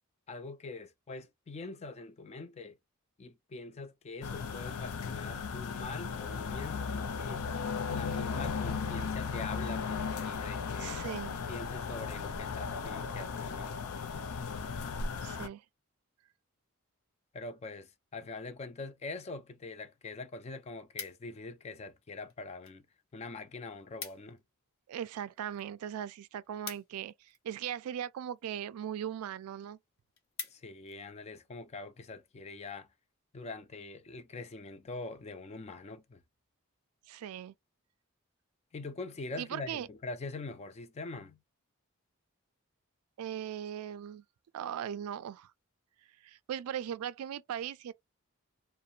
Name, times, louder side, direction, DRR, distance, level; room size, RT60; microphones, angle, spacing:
voice 1, 0.3-2.7 3.2-7.4 7.9-11.0 11.5-13.8 17.3-22.9 23.1-24.4 30.5-32.9 33.3-36.2 38.7-41.4, left 3 dB, 30° left, 0.3 m, -43 dB
sound 1, 4.2-15.5, left 5 dB, 90° left, 0.5 m, -36 dB
voice 2, 10.8-11.4 15.2-15.6 24.9-29.8 37.1-37.5 39.4-39.9 43.2-44.2 44.5-45.5 46.2-47.9, right 9 dB, 85° right, 0.3 m, -39 dB
sound 2, 20.6-21.6 22.3-22.8 23.1-23.2 23.5-23.6 23.8-24.4 24.8-27.6 28.3-28.7 29.2-29.3 29.6-29.7 30.0-31.0 31.5-31.7, left 7 dB, 65° left, 0.9 m, -46 dB
2.5 x 2.1 x 2.7 m
head